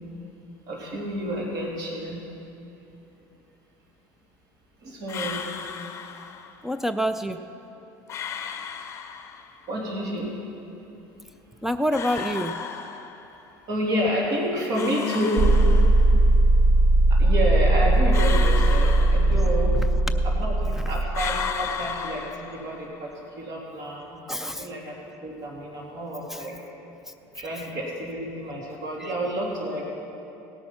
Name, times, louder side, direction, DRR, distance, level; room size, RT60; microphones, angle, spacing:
voice 1, 0.7-2.3 4.8-5.4 9.7-10.3 13.7-15.8 17.1-19.8 20.2-23.1 23.4-24.9 25.2-26.5 27.3-29.9, equal, 50° right, -3 dB, 2.9 m, -29 dB
sound 1, 5.1-6.6 8.1-9.6 11.9-13.5 14.7-16.3 18.1-19.9 21.1-23.0, left 7 dB, 35° left, 1.0 m, -34 dB
voice 2, 6.6-7.4 11.6-12.6 20.7-20.9 24.3-24.7 26.3-26.4 29.0-29.1, equal, 5° right, 9 dB, 0.4 m, -27 dB
sound 2, 15.4-21.5, right 2 dB, 35° right, 0.7 m, -19 dB
17.5 x 8.7 x 5.7 m, 2.9 s
supercardioid pair, 120°, 9 cm